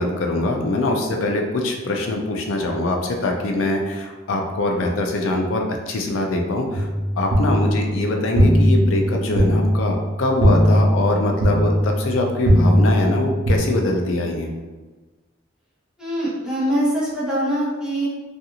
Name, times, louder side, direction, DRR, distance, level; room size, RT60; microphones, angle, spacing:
voice 1, 0.0-6.9 7.2-14.5, left 2 dB, 85° left, 2 dB, 0.4 m, -23 dB
sound 1, 6.7-13.6, equal, 85° right, 0.6 m, -19 dB
voice 2, 16.0-18.1, right 1 dB, 5° right, -9 dB, 0.8 m, -23 dB
2.5 x 2.4 x 2.8 m, 1.3 s
head